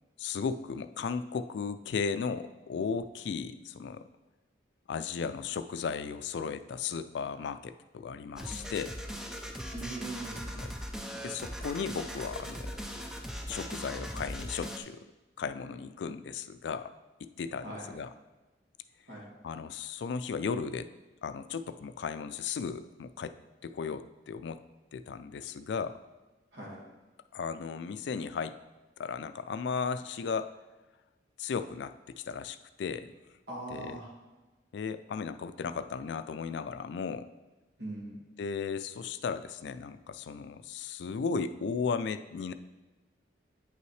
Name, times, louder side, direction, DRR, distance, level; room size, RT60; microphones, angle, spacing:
voice 1, 0.2-4.0 4.9-9.0 10.6-10.7 11.2-12.7 13.5-15.0 15.4-16.9 17.2-18.1 19.4-20.9 21.2-23.3 23.6-24.6 24.9-26.0 27.3-28.6 29.0-30.5 31.4-33.1 33.7-34.0 34.7-37.3 38.4-42.5, left 5 dB, 70° left, 11 dB, 0.3 m, -35 dB
sound 1, 8.4-14.8, equal, 5° right, 0.4 m, -39 dB
voice 2, 9.7-10.4 17.6-17.9 19.1-19.3 26.5-26.8 33.5-34.1 37.8-38.2, right 2 dB, 80° right, -5 dB, 1.9 m, -40 dB
8.6 x 5.6 x 3.2 m, 1.1 s
head